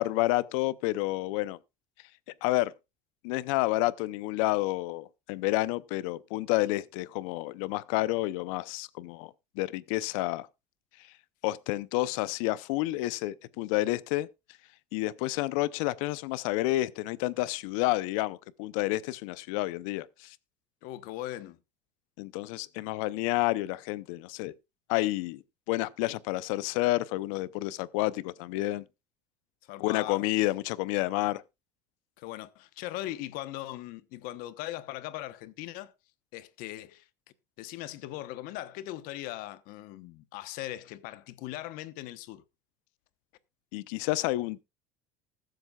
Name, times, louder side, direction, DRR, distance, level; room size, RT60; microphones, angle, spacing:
voice 1, 0.0-1.6 2.4-2.7 3.2-10.5 11.4-14.3 14.9-20.4 22.2-24.5 24.9-25.4 25.7-28.8 29.8-31.4 43.7-44.6, left 18 dB, 85° left, 0.7 m, -29 dB
voice 2, 20.8-21.6 29.6-30.3 32.2-35.9 36.3-37.1 37.6-42.4, left 15 dB, 60° left, 1.1 m, -39 dB
20.0 x 7.8 x 2.4 m
cardioid pair, 165°, 17 cm